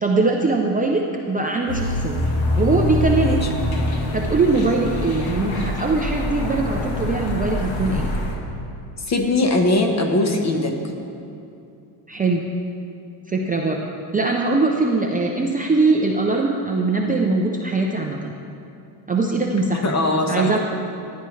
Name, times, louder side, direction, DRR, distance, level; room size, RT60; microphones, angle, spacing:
voice 1, 0.0-2.3 2.6-3.4 4.1-8.1 12.1-12.4 13.3-13.8 14.1-18.3 19.1-19.9 20.3-20.6, right 3 dB, 20° right, 0 dB, 0.4 m, -21 dB
sound 1, 1.7-8.4, left 1 dB, 50° left, 1.4 m, -24 dB
voice 2, 9.1-10.7 19.8-20.6, left 2 dB, 35° left, 3 dB, 1.1 m, -20 dB
14.5 x 10.5 x 3.2 m, 2.6 s
cardioid pair, 160°, 48 cm